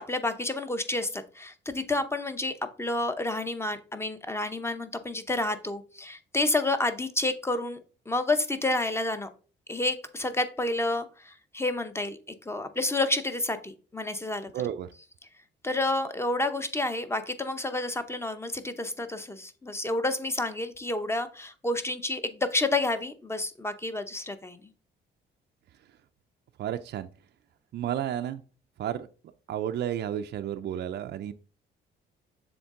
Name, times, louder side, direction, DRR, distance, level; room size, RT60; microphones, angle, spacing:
voice 1, 0.0-7.8 8.1-9.3 9.7-14.5 15.6-24.6, left 2 dB, 15° left, 9 dB, 0.7 m, -30 dB
voice 2, 14.5-14.9 26.6-27.1 27.7-28.4 28.8-29.1 29.5-31.3, right 10 dB, 60° right, 8 dB, 0.4 m, -32 dB
7.0 x 3.6 x 3.7 m, 0.37 s
cardioid pair, 90°, 20 cm